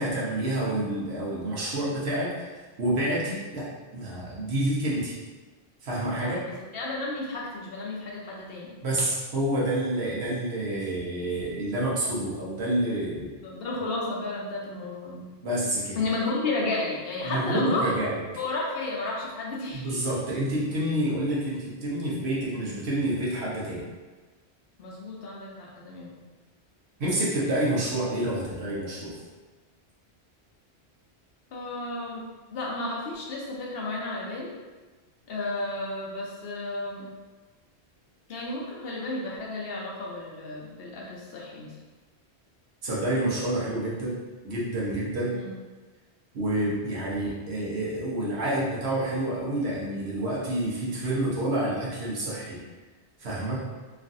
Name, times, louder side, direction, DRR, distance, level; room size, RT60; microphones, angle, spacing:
voice 1, 0.0-3.7 3.9-5.1 5.8-6.4 8.8-13.3 15.4-16.0 17.2-18.1 19.7-23.8 27.0-29.2 42.8-44.2 44.4-45.4 46.3-52.6 53.2-53.6, right 1 dB, 75° right, -6 dB, 1.1 m, -28 dB
voice 2, 6.2-8.7 13.4-15.3 16.0-17.9 18.4-20.1 24.8-26.2 31.5-32.2 32.5-34.5 35.3-37.1 38.3-41.7 45.3-45.5, left 2 dB, 65° left, -3 dB, 0.8 m, -32 dB
3.1 x 2.4 x 2.5 m, 1.3 s
omnidirectional pair, 1.1 m